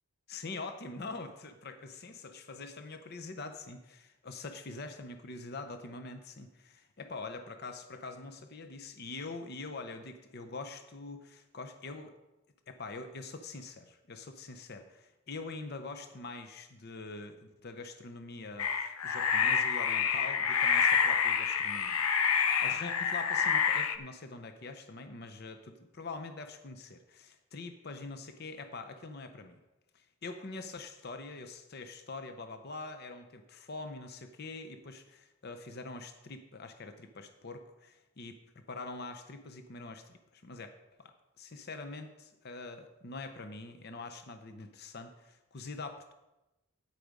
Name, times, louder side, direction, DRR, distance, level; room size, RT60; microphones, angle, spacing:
voice 1, 0.3-12.2 12.7-29.6 29.9-38.3 38.7-40.7 41.0-41.1 41.4-46.1, left 3 dB, 50° left, 7 dB, 0.7 m, -44 dB
sound 1, 18.6-24.0, left 7 dB, 85° left, 0.7 m, -28 dB
9.2 x 8.3 x 5.2 m, 0.99 s
head